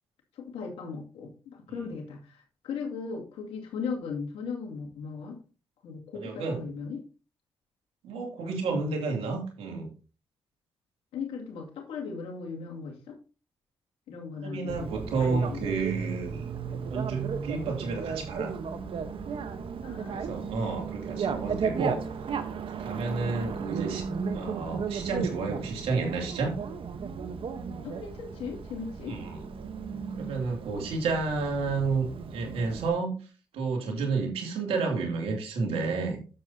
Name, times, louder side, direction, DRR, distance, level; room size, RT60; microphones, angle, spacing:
voice 1, 0.3-5.4 5.8-7.0 11.1-13.2 14.1-15.7 19.8-20.4 23.1-23.4 27.8-29.2, left 5 dB, 85° left, 1 dB, 2.4 m, -38 dB
voice 2, 6.1-6.6 8.0-9.9 14.4-16.4 16.9-18.5 20.1-22.0 22.8-24.0 24.3-26.6 29.1-29.5 30.1-33.2 33.5-36.2, right 4 dB, 85° right, 2 dB, 2.7 m, -31 dB
Bicycle, 14.7-32.9, right 6 dB, 65° right, 1.1 m, -35 dB
10.0 x 7.4 x 2.8 m, 0.35 s
supercardioid pair, 60°, 10 cm